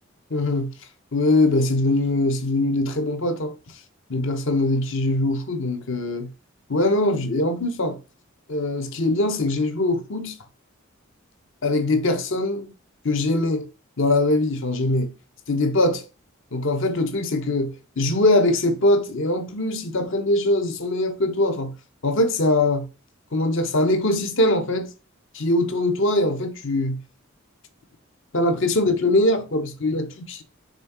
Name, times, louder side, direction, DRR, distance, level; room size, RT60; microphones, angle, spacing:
voice 1, 0.3-0.7 1.1-3.6 4.1-6.3 6.7-8.0 8.5-10.4 11.6-12.7 13.0-13.7 14.0-15.1 15.5-16.1 16.5-21.7 22.0-22.9 23.3-24.9 25.3-27.0 28.3-30.4, left 2 dB, 65° left, 1.0 m, -22 dB
5.3 x 3.6 x 5.5 m
head